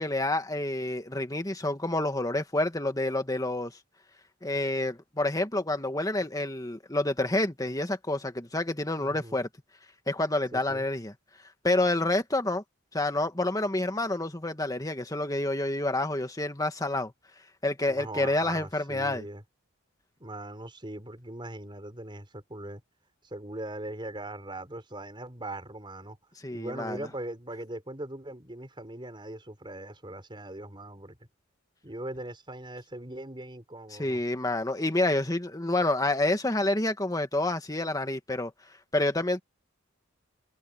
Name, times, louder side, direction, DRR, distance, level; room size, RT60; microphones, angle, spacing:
voice 1, 0.0-3.7 4.4-9.5 10.1-11.1 11.6-12.6 12.9-17.1 17.6-19.2 26.4-27.0 34.0-38.5 38.9-39.4, left 2 dB, 20° left, 1.9 m, -28 dB
voice 2, 9.0-9.4 10.5-10.9 17.9-19.4 20.2-22.8 23.2-26.2 26.5-31.3 31.8-34.2, right 1 dB, 25° right, 4.6 m, -40 dB
head